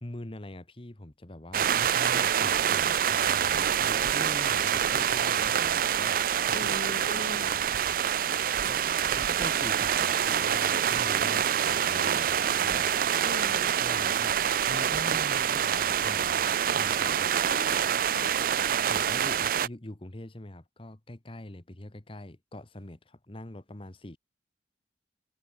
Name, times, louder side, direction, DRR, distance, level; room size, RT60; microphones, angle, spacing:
voice 1, 0.0-6.7 7.4-8.0 8.6-8.8 9.2-13.2 13.5-17.3 18.8-24.2, left 1 dB, 30° left, 1.3 m, -44 dB
sound 1, 1.5-19.7, right 9 dB, 50° right, 0.5 m, -26 dB
voice 2, 6.5-7.6 8.6-9.0 13.2-13.8 17.5-17.7 18.1-18.4, left 1 dB, 90° left, 3.5 m, -41 dB
head